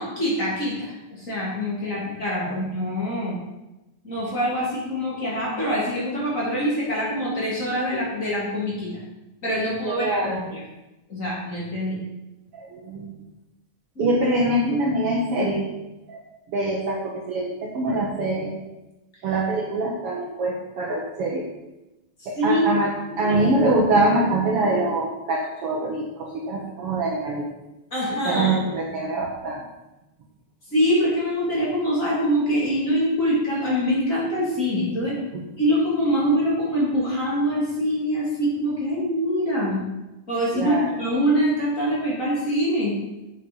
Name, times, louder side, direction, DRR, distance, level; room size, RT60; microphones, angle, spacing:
voice 1, 0.0-3.4 4.0-8.9 9.4-10.6 11.1-12.0 14.0-14.1 22.2-22.6 23.2-23.4 27.9-28.6 30.7-35.1 35.6-39.8 40.3-43.0, equal, 25° left, -6 dB, 3.5 m, -24 dB
voice 2, 9.8-10.4 12.5-13.1 14.0-15.6 16.1-16.2 16.5-18.6 19.2-21.5 22.3-27.5 28.2-29.6 35.3-35.4 40.5-40.9, right 2 dB, 60° right, -2 dB, 1.8 m, -24 dB
8.1 x 7.6 x 5.6 m, 0.99 s
omnidirectional pair, 3.4 m